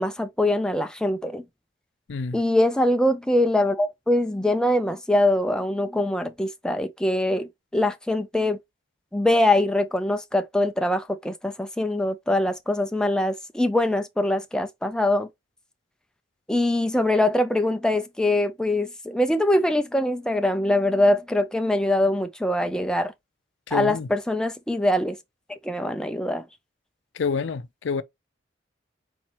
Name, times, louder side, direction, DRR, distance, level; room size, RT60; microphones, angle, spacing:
voice 1, 0.0-1.4 2.3-8.6 9.1-15.3 16.5-23.1 23.7-25.2 25.6-26.4, left 1 dB, 5° left, 0.4 m, -23 dB
voice 2, 23.7-24.1 27.2-28.0, left 5 dB, 80° left, 0.4 m, -27 dB
4.4 x 4.1 x 2.9 m
head